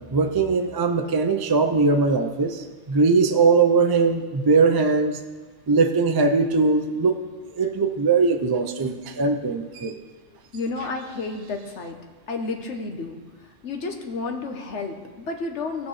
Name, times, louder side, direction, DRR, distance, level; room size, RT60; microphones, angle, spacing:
voice 1, 0.0-5.2 5.7-7.2 7.6-10.0, right 4 dB, 35° right, 6 dB, 0.3 m, -20 dB
voice 2, 10.5-12.0 12.3-13.2 13.6-15.9, left 3 dB, 65° left, 4 dB, 1.2 m, -31 dB
17.5 x 5.9 x 3.2 m, 1.4 s
omnidirectional pair, 1.3 m